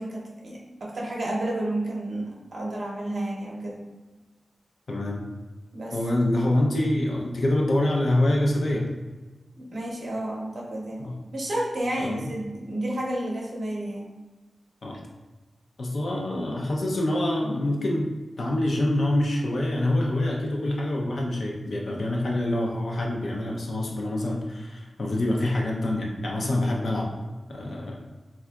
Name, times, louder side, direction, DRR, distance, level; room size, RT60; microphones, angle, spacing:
voice 1, 0.0-3.8 5.7-6.0 9.5-11.0 11.3-14.1, right 1 dB, 60° right, -4 dB, 0.7 m, -31 dB
voice 2, 4.9-5.3 5.9-8.9 11.0-11.2 12.0-12.3 14.8-15.0 15.8-18.1 18.4-27.2 27.5-28.0, left 1 dB, 65° left, -1 dB, 0.5 m, -26 dB
3.7 x 2.3 x 2.3 m, 1.2 s
wide cardioid pair, 140°, 0 cm